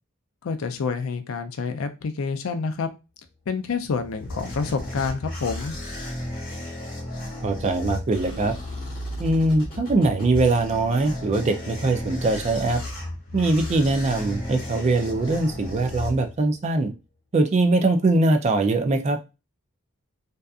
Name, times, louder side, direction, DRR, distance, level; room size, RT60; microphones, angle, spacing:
voice 1, 0.4-2.9 3.5-5.8, left 5 dB, 70° left, 7 dB, 0.4 m, -28 dB
sound 1, 3.8-16.7, left 1 dB, 40° left, 0.9 m, -34 dB
voice 2, 7.4-8.5 9.2-12.8 13.3-16.9 17.3-19.2, right 2 dB, 30° right, 6 dB, 0.3 m, -22 dB
2.6 x 2.3 x 2.3 m, 0.28 s
head